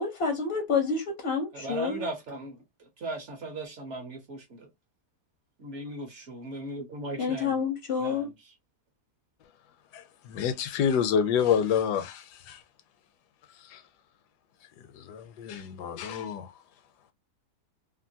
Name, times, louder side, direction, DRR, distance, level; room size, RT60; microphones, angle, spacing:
voice 1, 0.0-2.1 7.2-8.3, left 5 dB, 60° left, 0.6 m, -28 dB
voice 2, 1.5-4.7 5.6-7.6 8.0-8.3, right 1 dB, 55° right, 0.9 m, -38 dB
voice 3, 9.9-12.6 13.6-13.8 14.9-16.5, left 8 dB, 85° left, 1.2 m, -28 dB
2.9 x 2.5 x 2.6 m
omnidirectional pair, 1.7 m